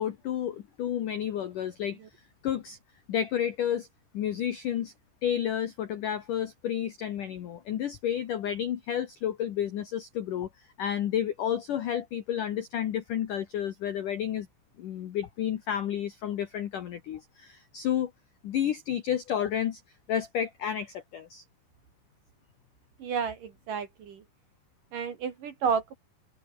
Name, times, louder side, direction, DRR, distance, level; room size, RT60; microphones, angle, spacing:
voice 1, 0.0-2.0 2.4-2.8 3.1-3.9 4.1-4.9 5.2-10.5 10.8-14.5 14.8-18.1 18.4-19.8 20.1-21.4, left 10 dB, 70° left, 2.0 m, -31 dB
voice 2, 23.0-24.2 24.9-26.0, right 6 dB, 55° right, 2.9 m, -31 dB
open air
omnidirectional pair, 5.8 m